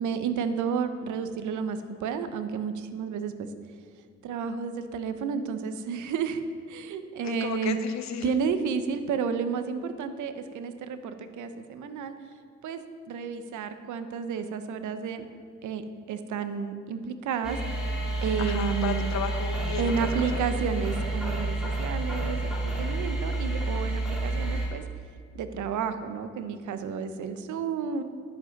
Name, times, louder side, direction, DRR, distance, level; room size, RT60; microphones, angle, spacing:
voice 1, 0.0-3.5 4.2-7.8 8.2-12.1 12.6-12.8 13.1-15.2 15.6-15.8 16.1-17.9 18.2-19.0 19.8-24.8 25.3-28.0, right 6 dB, 75° right, 9 dB, 0.9 m, -31 dB
voice 2, 7.2-8.3 18.4-19.9 20.2-20.6, left 7 dB, 65° left, 9 dB, 0.9 m, -34 dB
sound 1, 17.4-24.7, right 2 dB, ahead, 2.9 m, -29 dB
10.5 x 8.0 x 5.2 m, 2.1 s
cardioid pair, 90°, 30 cm